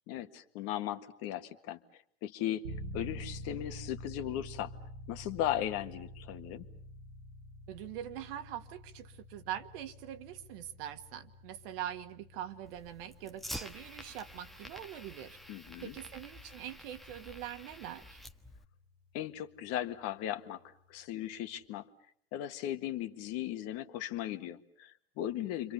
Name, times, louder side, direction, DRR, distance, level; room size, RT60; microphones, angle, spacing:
voice 1, 0.1-1.8 2.2-2.7 2.9-4.7 5.1-6.7 15.5-15.9 19.1-20.6 20.9-21.9 22.3-25.7, left 12 dB, 50° left, 1.8 m, -37 dB
sound 1, 2.6-19.4, equal, 80° right, 2.5 m, -49 dB
voice 2, 7.7-15.4 15.8-18.2, right 11 dB, 60° right, 1.9 m, -43 dB
Fire, 12.6-18.6, equal, ahead, 1.3 m, -48 dB
29.5 x 25.5 x 6.9 m
hypercardioid pair, 95°, 32 cm